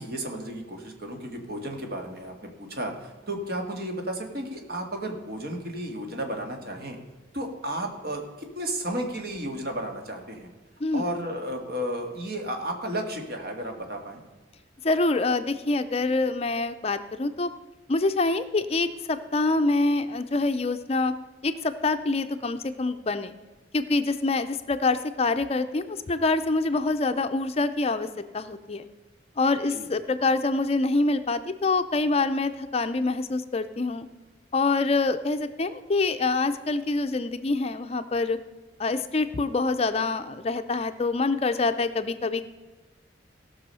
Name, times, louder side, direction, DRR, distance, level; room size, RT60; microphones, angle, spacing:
voice 1, 0.0-7.0 7.3-8.2 8.5-10.5 10.9-14.2 29.7-29.9, right 1 dB, 55° right, 3 dB, 1.9 m, -33 dB
voice 2, 14.8-17.5 17.9-21.1 21.4-23.3 23.7-28.1 28.3-28.9 29.4-34.1 34.5-38.4 38.8-42.4, left 3 dB, 35° left, 10 dB, 0.5 m, -25 dB
16.5 x 6.2 x 5.5 m, 1.3 s
head